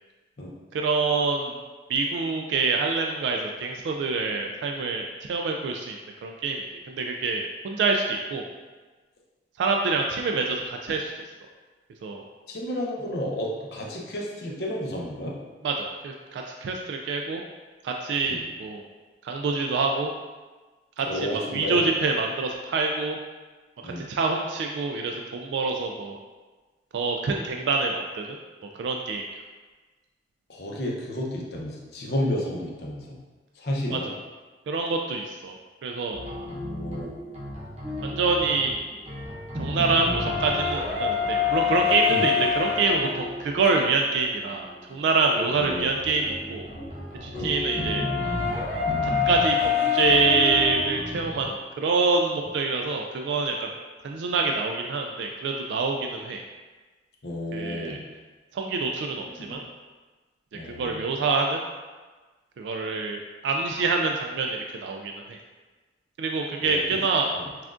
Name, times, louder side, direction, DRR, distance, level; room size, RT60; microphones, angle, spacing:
voice 1, 0.7-1.6 1.9-6.0 6.2-8.5 9.6-11.1 12.0-12.2 15.6-17.4 17.8-18.8 19.2-20.1 21.0-23.2 23.8-26.2 26.9-28.4 28.7-29.2 33.9-34.2 34.7-35.6 35.8-36.2 38.0-38.8 39.6-46.7 47.2-48.0 49.0-53.7 54.0-56.4 57.5-58.0 58.5-59.6 60.6-61.6 62.6-65.4 66.2-67.3, right 4 dB, 85° right, 1 dB, 0.3 m, -26 dB
voice 2, 12.5-15.3 18.2-18.4 21.0-21.9 23.8-24.0 30.5-33.2 33.6-34.1 36.5-37.1 42.1-42.3 45.5-45.9 47.3-47.5 57.2-58.0 59.4-59.6 60.5-61.0 66.6-67.0 67.3-67.5, left 1 dB, 65° left, -2 dB, 0.7 m, -32 dB
sound 1, 36.1-51.5, left 5 dB, 35° right, 0.8 m, -28 dB
5.8 x 2.4 x 2.5 m, 1.3 s
head